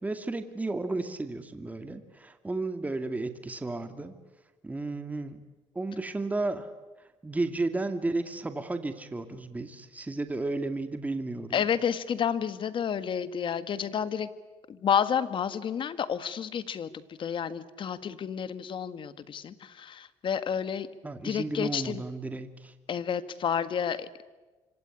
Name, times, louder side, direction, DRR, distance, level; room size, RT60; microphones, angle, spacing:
voice 1, 0.0-4.1 4.6-5.4 5.7-6.7 7.2-11.7 21.0-22.7, right 2 dB, 15° right, 8 dB, 2.2 m, -33 dB
voice 2, 11.5-14.3 14.7-20.9 21.2-22.0 22.9-24.3, left 8 dB, 45° left, 13 dB, 1.7 m, -30 dB
26.5 x 25.5 x 8.5 m, 1.2 s
cardioid pair, 115°, 12 cm